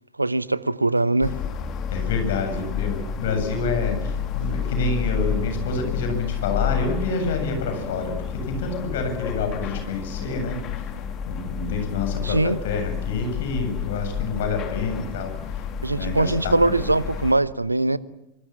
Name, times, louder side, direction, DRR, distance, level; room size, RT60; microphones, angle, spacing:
voice 1, 0.2-1.3 12.2-12.6 15.8-18.0, right 2 dB, 85° right, 0.9 m, -21 dB
sound 1, 1.2-17.3, left 8 dB, 35° left, 2.9 m, -30 dB
voice 2, 1.9-10.6 11.3-15.5 15.9-16.5, left 3 dB, 55° left, 7.9 m, -28 dB
25.5 x 25.0 x 7.4 m
figure-of-eight pair, 90°, 0 cm